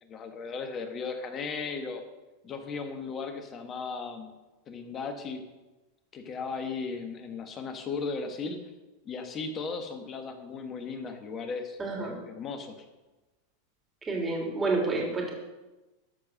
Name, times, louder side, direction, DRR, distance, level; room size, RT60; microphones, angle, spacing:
voice 1, 0.0-2.0 2.4-4.3 4.7-5.4 6.1-8.7 9.0-11.8 12.0-12.8, left 4 dB, 35° left, 6 dB, 1.6 m, -36 dB
voice 2, 11.8-12.2 14.1-15.3, right 3 dB, 20° right, 0 dB, 3.1 m, -29 dB
13.0 x 4.8 x 6.4 m, 1.1 s
hypercardioid pair, 105°, 0 cm